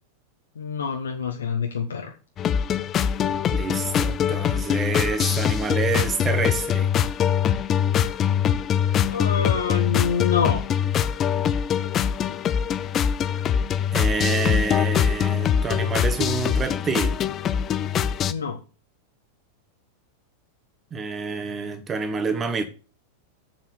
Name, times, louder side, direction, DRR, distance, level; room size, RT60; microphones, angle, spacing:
voice 1, 0.5-2.1 9.1-10.6 18.3-18.6, left 6 dB, 70° left, 1.3 m, -26 dB
sound 1, 2.4-18.3, left 8 dB, 30° left, 0.6 m, -23 dB
voice 2, 3.5-6.9 13.9-17.2 20.9-22.6, right 4 dB, 20° right, 1.7 m, -27 dB
7.7 x 7.4 x 6.8 m
figure-of-eight pair, 90°, 0 cm